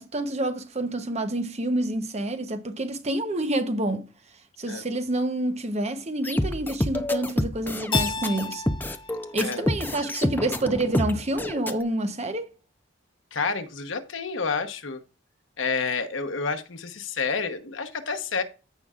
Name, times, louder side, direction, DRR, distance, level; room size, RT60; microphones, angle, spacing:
voice 1, 0.0-4.1 4.6-8.6 9.3-12.5, right 1 dB, 35° right, 0.9 m, -28 dB
sound 1, 6.2-11.7, left 1 dB, 10° left, 0.6 m, -28 dB
Keyboard (musical), 7.9-10.7, left 5 dB, 25° left, 1.3 m, -34 dB
voice 2, 13.3-15.0 15.6-18.4, left 5 dB, 85° left, 1.1 m, -29 dB
14.5 x 5.4 x 2.4 m
head